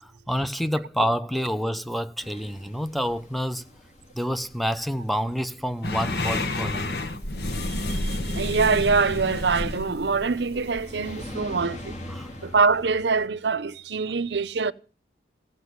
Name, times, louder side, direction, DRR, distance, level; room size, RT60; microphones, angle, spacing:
voice 1, 0.0-3.6 4.1-7.0 12.1-12.3, equal, ahead, 0.6 m, -28 dB
sound 1, 2.2-13.3, left 1 dB, 40° left, 2.4 m, -44 dB
sound 2, 5.8-11.3, left 2 dB, 60° left, 1.4 m, -30 dB
voice 2, 7.6-12.0 12.4-14.7, right 4 dB, 70° right, 0.7 m, -24 dB
15.5 x 8.0 x 8.1 m
head